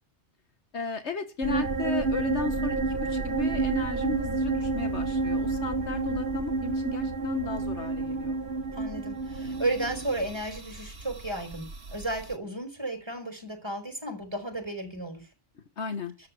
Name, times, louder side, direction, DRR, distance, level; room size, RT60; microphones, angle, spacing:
voice 1, 0.7-8.4 15.8-16.1, left 3 dB, 75° left, 9 dB, 1.7 m, -34 dB
sound 1, 1.4-12.3, right 3 dB, 65° right, 1.7 m, -30 dB
voice 2, 8.7-15.3, right 1 dB, 20° right, 5 dB, 5.1 m, -33 dB
12.5 x 8.2 x 9.4 m, 0.32 s
omnidirectional pair, 1.2 m